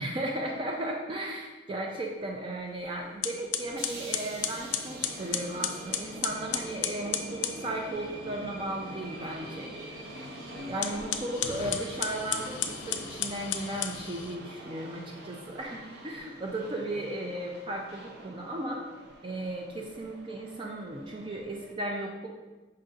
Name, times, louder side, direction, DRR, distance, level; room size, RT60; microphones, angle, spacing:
voice 1, 0.0-9.7 10.7-18.8 19.2-22.3, right 1 dB, 25° right, 0 dB, 0.4 m, -35 dB
sound 1, 2.7-2.8 3.2-7.6 10.7-14.4, left 9 dB, 75° left, 0.4 m, -33 dB
sound 2, 3.4-21.7, right 1 dB, 60° right, 0.7 m, -44 dB
5.5 x 2.6 x 3.8 m, 1.2 s
head